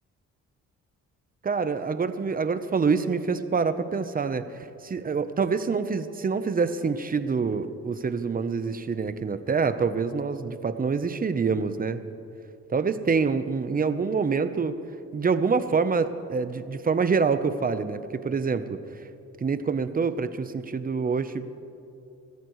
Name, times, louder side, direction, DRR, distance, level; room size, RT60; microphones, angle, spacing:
voice 1, 1.4-12.0 12.7-14.8 15.1-19.0 19.4-21.5, right 5 dB, 30° right, 11 dB, 0.9 m, -26 dB
25.5 x 14.0 x 3.2 m, 2.7 s
cardioid pair, 90°, 30 cm